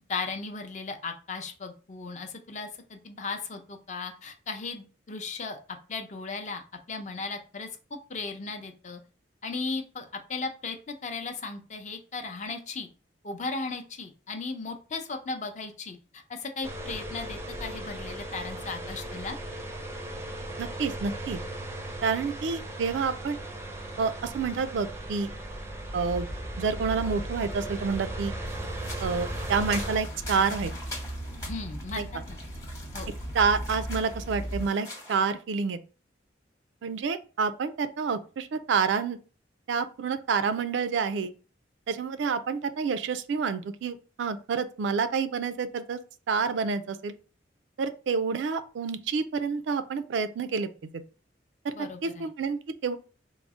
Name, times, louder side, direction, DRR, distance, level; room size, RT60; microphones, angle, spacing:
voice 1, 0.1-5.6 5.9-6.6 6.9-7.7 8.1-9.0 9.4-12.9 13.2-19.4 31.4-32.4 32.9-33.1 51.7-52.3, left 4 dB, 40° left, 0.5 m, -36 dB
sound 1, 16.6-30.0, right 1 dB, 15° right, 0.4 m, -37 dB
voice 2, 20.6-21.4 22.0-23.4 24.0-25.3 25.9-26.3 26.6-28.3 29.0-30.7 32.0-32.1 33.3-35.8 36.8-39.2 39.7-41.3 41.9-46.0 46.3-47.1 47.8-50.7 51.6-53.0, right 5 dB, 85° right, 0.4 m, -28 dB
sound 2, 26.0-34.6, right 1 dB, 85° left, 0.8 m, -38 dB
sound 3, 28.5-35.1, left 2 dB, 20° left, 0.9 m, -43 dB
3.7 x 2.0 x 3.5 m
head